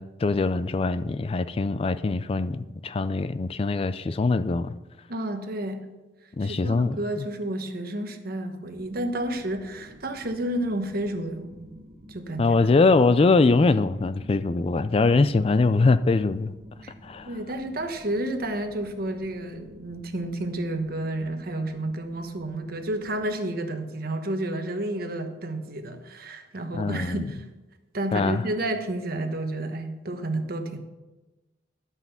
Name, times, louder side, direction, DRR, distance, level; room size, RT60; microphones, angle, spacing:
voice 1, 0.0-4.7 6.4-7.3 12.4-16.5 17.0-17.3 26.8-27.3 28.1-28.4, left 3 dB, 35° left, 0.3 m, -22 dB
voice 2, 5.1-5.9 6.4-11.7 12.1-12.7 16.8-16.9 17.3-27.5 27.9-30.8, right 1 dB, 55° right, 1.2 m, -31 dB
sound 1, 8.8-23.2, equal, 35° right, 1.5 m, -49 dB
12.0 x 5.8 x 6.9 m
head